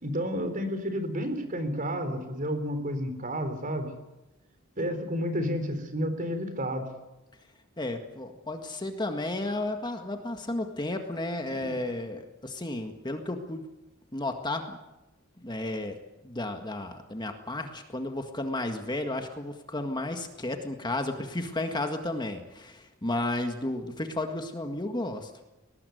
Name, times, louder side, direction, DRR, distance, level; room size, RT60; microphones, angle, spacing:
voice 1, 0.0-3.9 4.8-6.9 11.6-11.8, equal, 40° right, 8 dB, 3.9 m, -31 dB
voice 2, 7.8-13.7 14.1-14.8 15.4-16.0 16.2-25.3, left 2 dB, 20° left, 5 dB, 1.8 m, -33 dB
21.0 x 19.5 x 9.3 m, 1.0 s
head